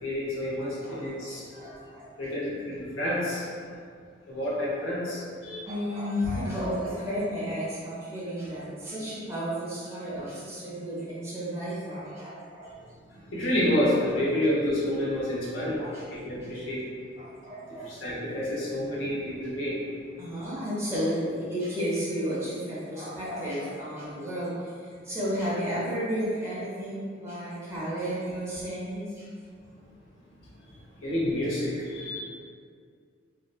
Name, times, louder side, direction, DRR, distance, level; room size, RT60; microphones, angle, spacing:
voice 1, 0.0-1.8 2.2-3.5 4.3-5.6 13.1-15.8 16.1-16.8 17.7-19.8 30.6-30.7 31.0-32.2, left 1 dB, 85° left, -7 dB, 0.8 m, -29 dB
voice 2, 0.6-2.1 3.6-3.7 5.7-12.7 15.8-16.1 17.2-17.9 20.2-29.3, equal, 15° right, -9 dB, 0.6 m, -33 dB
2.6 x 2.2 x 2.3 m, 2.1 s
head